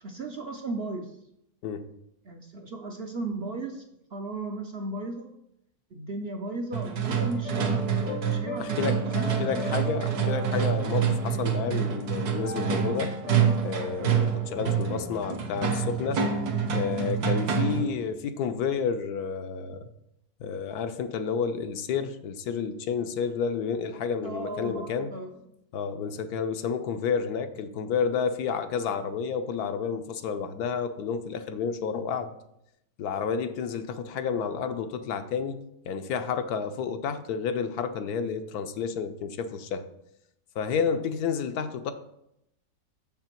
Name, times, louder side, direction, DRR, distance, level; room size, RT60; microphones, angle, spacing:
voice 1, 0.0-1.2 2.2-3.8 4.1-5.3 5.9-7.9 8.3-9.8 24.2-25.3, right 2 dB, 55° right, 4 dB, 0.7 m, -35 dB
sound 1, 6.7-18.0, right 7 dB, 75° right, 1.5 m, -27 dB
sound 2, 7.4-18.1, left 2 dB, 40° left, 0.7 m, -40 dB
voice 2, 8.6-13.1 13.6-16.2 16.7-19.8 20.4-25.1 25.7-32.3 33.0-35.6 35.9-39.9 40.6-41.9, left 6 dB, 80° left, 9 dB, 1.2 m, -30 dB
6.9 x 5.8 x 4.4 m, 0.79 s
omnidirectional pair, 1.7 m